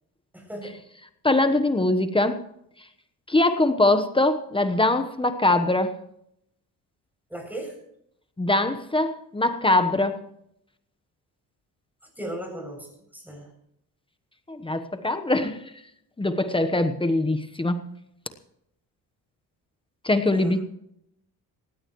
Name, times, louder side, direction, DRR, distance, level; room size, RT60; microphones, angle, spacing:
voice 1, 0.3-0.8 7.3-7.8 12.2-13.5 20.3-20.6, right 1 dB, 5° right, 2 dB, 7.3 m, -37 dB
voice 2, 1.2-2.4 3.3-5.9 8.4-10.2 14.5-15.6 16.2-17.8 20.0-20.6, left 2 dB, 15° left, 8 dB, 1.1 m, -22 dB
19.0 x 16.5 x 3.1 m, 0.76 s
cardioid pair, 100°, 37 cm